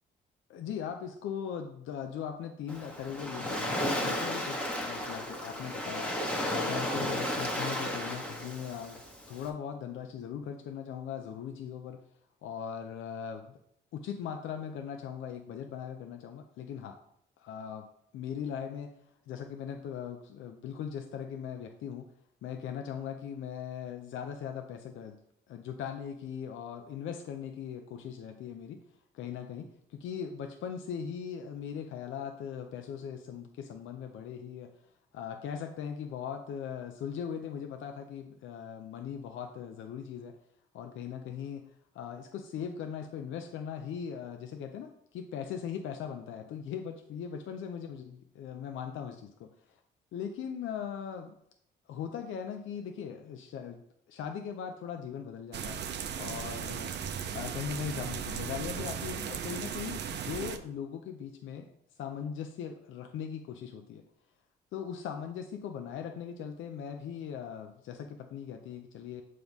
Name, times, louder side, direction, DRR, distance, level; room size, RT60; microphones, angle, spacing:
voice 1, 0.5-6.2 6.5-9.0 9.3-12.0 12.4-13.6 13.9-17.0 17.4-17.9 18.1-18.9 19.3-22.1 22.4-25.2 25.5-28.8 29.1-34.7 35.1-40.4 40.7-49.8 50.1-51.4 51.9-55.8 56.2-56.9 57.3-61.7 62.0-64.0 64.7-69.2, left 8 dB, 75° left, 5 dB, 0.6 m, -39 dB
Waves surf, 2.7-9.5, left 1 dB, 5° left, 1.3 m, -34 dB
sound 1, 55.5-60.6, right 8 dB, 60° right, 0.6 m, -37 dB
7.1 x 3.2 x 5.3 m, 0.72 s
cardioid pair, 90°, 20 cm